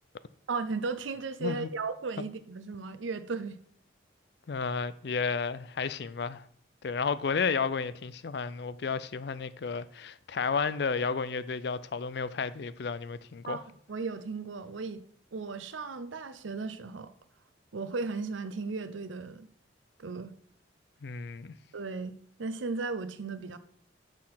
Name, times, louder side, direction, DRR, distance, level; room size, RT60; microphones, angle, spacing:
voice 1, 0.5-3.6 13.5-13.6 13.9-15.0 15.3-17.1 17.7-19.5 20.0-20.3 21.7-23.6, right 4 dB, 85° right, 0.7 m, -35 dB
voice 2, 4.5-6.5 6.8-13.6 21.0-21.5, left 5 dB, 60° left, 0.4 m, -32 dB
6.6 x 6.1 x 5.7 m
head